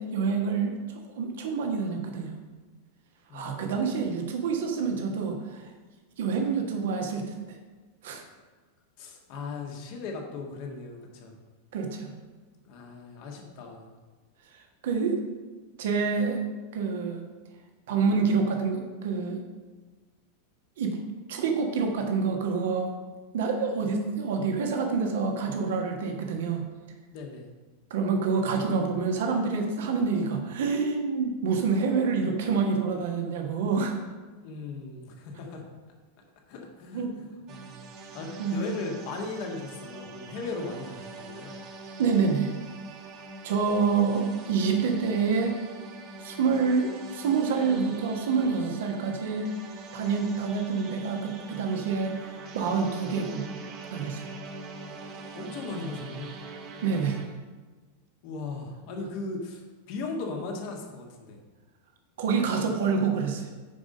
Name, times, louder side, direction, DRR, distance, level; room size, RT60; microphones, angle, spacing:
voice 1, 0.0-2.3 3.3-5.7 6.2-7.4 8.0-8.2 11.7-12.1 14.5-15.2 15.8-16.4 16.7-17.2 17.9-19.4 20.8-21.0 21.3-22.9 23.3-26.6 27.9-34.0 36.9-37.1 38.4-38.6 42.0-42.5 43.4-45.6 46.2-49.5 49.9-52.1 52.5-53.4 53.9-54.3 56.8-57.2 62.2-63.5, right 5 dB, 55° right, 2 dB, 1.4 m, -27 dB
voice 2, 3.3-3.8 9.0-11.4 12.7-13.9 27.1-27.5 34.4-35.6 36.5-37.8 38.1-41.5 55.0-56.3 58.2-59.6 59.9-61.4, left 3 dB, 45° left, 1 dB, 1.7 m, -37 dB
sound 1, 37.5-57.3, right 3 dB, 35° right, 1.3 m, -43 dB
9.4 x 5.1 x 5.3 m, 1.3 s
figure-of-eight pair, 90°, 0 cm